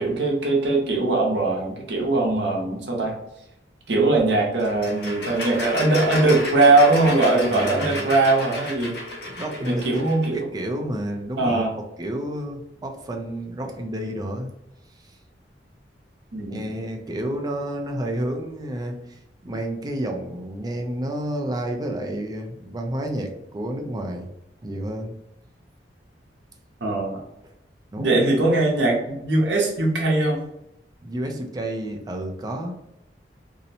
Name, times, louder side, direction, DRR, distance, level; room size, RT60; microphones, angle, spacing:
voice 1, 0.0-3.2 3.9-9.0 9.6-10.5 11.4-11.7 16.3-16.6 26.8-27.2 28.0-30.4, right 2 dB, 75° right, -1 dB, 0.8 m, -21 dB
sound 1, 4.6-10.3, left 2 dB, 65° left, 0.7 m, -32 dB
voice 2, 7.5-8.0 9.4-10.0 10.3-11.7 12.0-14.5 16.5-19.0 19.4-24.3 24.6-25.1 27.4-27.5 27.9-28.2 31.0-32.8, right 1 dB, 20° right, 3 dB, 0.4 m, -30 dB
2.7 x 2.0 x 2.7 m, 0.83 s
head